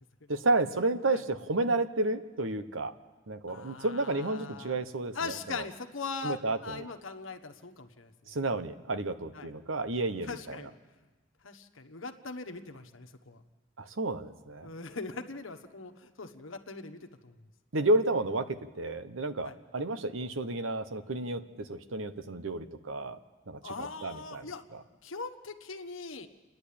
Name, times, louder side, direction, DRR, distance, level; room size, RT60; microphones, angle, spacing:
voice 1, 0.3-2.9 3.3-5.6 6.2-6.8 8.3-10.7 13.8-14.7 17.7-23.2 23.5-24.4 24.7-24.8, right 2 dB, 90° right, 10 dB, 1.1 m, -31 dB
voice 2, 3.5-4.8 5.1-8.4 9.3-9.5 10.3-11.0 11.4-13.4 14.6-17.4 19.4-19.6 23.6-24.6 25.0-26.3, left 4 dB, 90° left, 8 dB, 1.3 m, -41 dB
29.0 x 10.5 x 8.7 m, 1.3 s
head